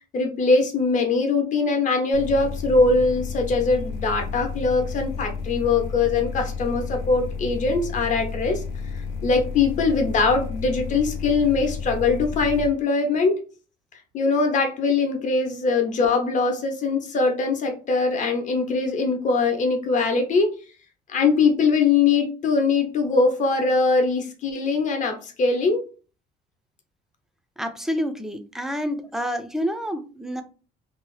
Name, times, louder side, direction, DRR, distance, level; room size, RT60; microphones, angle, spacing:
voice 1, 0.1-8.6 8.9-13.4 14.1-20.5 21.1-25.8, left 4 dB, 50° left, 4 dB, 0.7 m, -22 dB
sound 1, 2.1-12.7, left 5 dB, 85° left, 0.5 m, -32 dB
voice 2, 27.6-30.4, equal, 5° right, 8 dB, 0.4 m, -28 dB
2.7 x 2.0 x 3.1 m, 0.37 s
cardioid pair, 110°, 17 cm